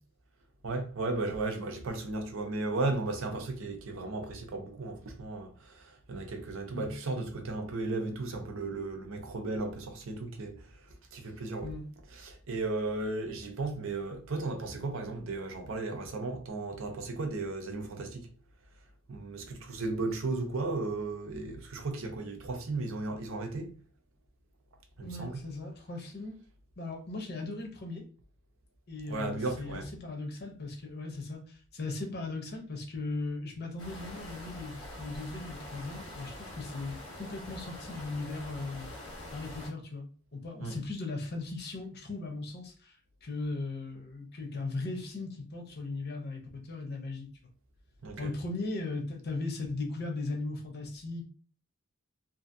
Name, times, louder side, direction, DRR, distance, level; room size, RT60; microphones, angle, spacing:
voice 1, 0.6-11.7 12.1-18.3 19.1-23.7 25.0-25.5 29.1-29.9 40.6-40.8 48.0-48.3, right 3 dB, 70° right, 0.6 m, -35 dB
voice 2, 25.0-26.4 26.8-28.1 28.9-38.9 39.3-47.3 48.2-51.2, left 3 dB, 50° left, 0.7 m, -38 dB
sound 1, 33.8-39.7, left 1 dB, 85° left, 1.1 m, -45 dB
2.7 x 2.5 x 2.6 m
head